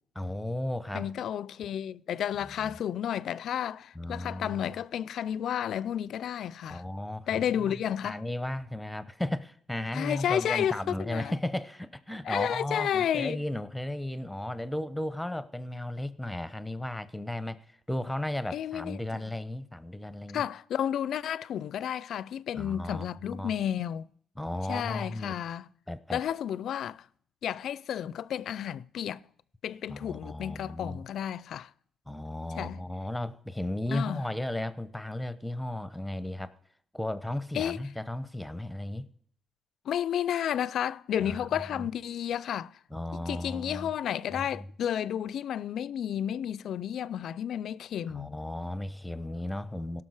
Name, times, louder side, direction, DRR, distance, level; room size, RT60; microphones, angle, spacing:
voice 1, 0.2-1.1 2.6-2.8 3.9-4.7 6.7-7.8 8.0-20.5 22.5-23.5 24.4-25.4 25.9-26.2 29.9-31.0 32.1-36.5 36.9-39.1 41.2-41.9 42.9-43.9 44.3-44.7 48.1-50.0, left 1 dB, 5° left, 0.8 m, -35 dB
voice 2, 0.9-6.8 7.3-8.2 9.9-11.3 12.2-13.4 18.5-19.0 20.3-24.1 24.7-25.7 26.1-27.1 27.4-29.2 29.6-31.7 32.6-32.8 33.9-34.2 37.5-37.8 39.9-42.8 43.1-48.4, left 9 dB, 70° left, 0.4 m, -32 dB
17.0 x 6.1 x 4.8 m
cardioid pair, 90°, 0 cm